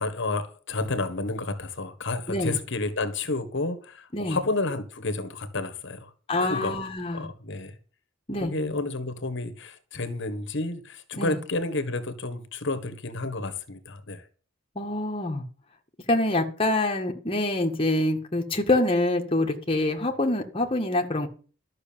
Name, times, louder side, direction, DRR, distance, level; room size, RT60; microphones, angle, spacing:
voice 1, 0.0-6.1 6.4-6.8 7.1-7.7 8.4-14.2, left 2 dB, 55° left, 1.5 m, -30 dB
voice 2, 6.3-7.3 8.3-8.5 11.1-11.4 14.7-15.4 16.1-21.3, left 2 dB, 25° left, 1.7 m, -25 dB
12.5 x 6.5 x 8.7 m
head